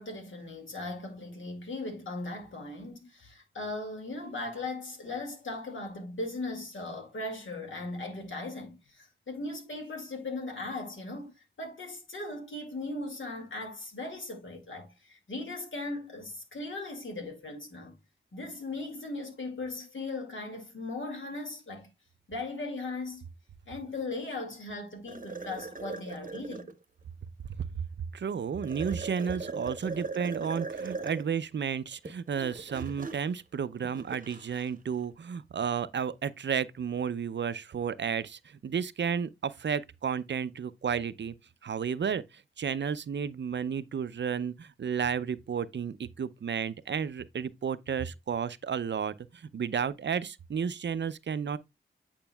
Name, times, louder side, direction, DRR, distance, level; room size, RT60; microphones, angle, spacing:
voice 1, 0.0-17.9 18.3-21.9 22.3-23.2 23.7-26.7 29.9-30.0, left 2 dB, 70° left, 2.1 m, -38 dB
sound 1, 25.1-26.8 28.6-31.3 31.9-34.7, right 4 dB, 40° right, 0.8 m, -40 dB
voice 2, 28.1-41.4 41.6-51.6, right 7 dB, 60° right, 0.5 m, -32 dB
8.8 x 5.1 x 2.2 m
wide cardioid pair, 70°, 20 cm